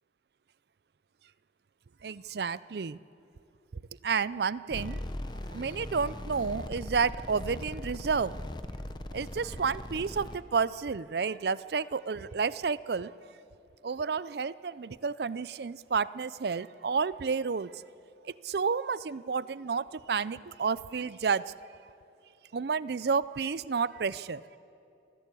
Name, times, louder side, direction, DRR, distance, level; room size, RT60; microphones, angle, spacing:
voice 1, 2.0-3.0 4.0-5.0 5.5-8.4 9.1-13.1 13.8-17.7 18.2-21.5 22.5-24.4, right 5 dB, 60° right, 18 dB, 0.5 m, -31 dB
sound 1, 4.7-10.4, left 1 dB, 25° left, 0.8 m, -39 dB
27.0 x 15.5 x 8.4 m, 2.7 s
head